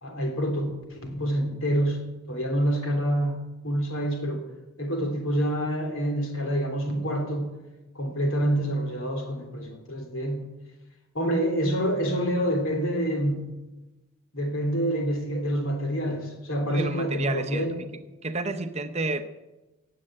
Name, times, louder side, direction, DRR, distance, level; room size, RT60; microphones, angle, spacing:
voice 1, 0.0-2.0 2.3-4.4 4.8-7.5 7.9-10.4 11.1-13.4 14.3-17.7, equal, 65° left, 3 dB, 3.3 m, -27 dB
voice 2, 16.7-17.7 18.2-19.3, right 2 dB, 30° right, 9 dB, 0.7 m, -30 dB
18.5 x 7.7 x 7.7 m, 1.1 s
head